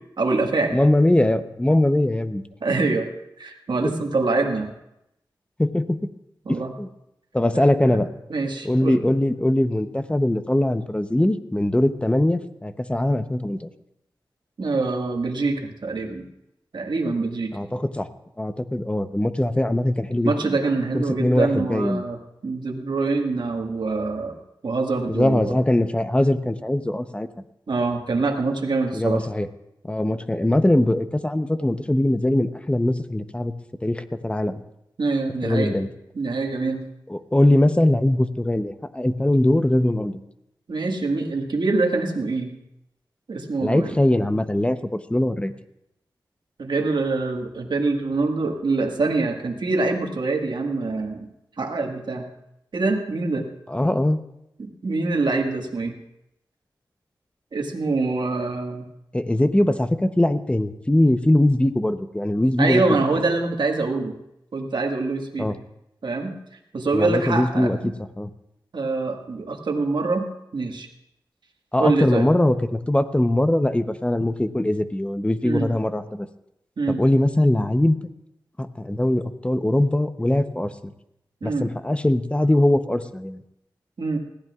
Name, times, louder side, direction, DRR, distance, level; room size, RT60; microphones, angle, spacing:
voice 1, 0.2-0.8 2.6-3.1 3.4-4.7 6.5-6.7 7.5-8.0 8.3-9.0 14.6-16.2 16.7-17.6 20.2-22.2 22.4-24.4 24.6-25.5 27.7-29.2 35.0-35.7 36.2-36.8 40.7-42.5 43.3-44.0 46.6-51.3 51.6-52.3 52.7-53.5 54.6-55.9 57.5-58.9 62.6-64.2 64.5-65.5 66.0-66.3 66.7-67.9 68.7-70.3 70.5-70.9 71.8-72.2 75.4-75.7 76.8-77.0 81.4-81.7 84.0-84.2, right 3 dB, 70° right, 2 dB, 1.7 m, -24 dB
voice 2, 0.7-2.4 3.8-3.9 5.6-6.1 6.5-6.9 7.3-8.1 8.6-13.7 17.5-18.1 18.4-20.6 20.9-22.0 25.1-27.3 28.9-29.5 29.8-33.5 33.8-34.6 35.4-35.9 37.1-40.2 43.6-45.5 53.7-54.2 59.1-63.0 65.4-65.6 66.9-68.3 71.7-76.3 77.0-78.0 78.6-80.9 81.4-83.4, left 1 dB, 15° left, 10 dB, 0.8 m, -21 dB
20.5 x 15.0 x 2.4 m, 0.84 s
wide cardioid pair, 65°, 8 cm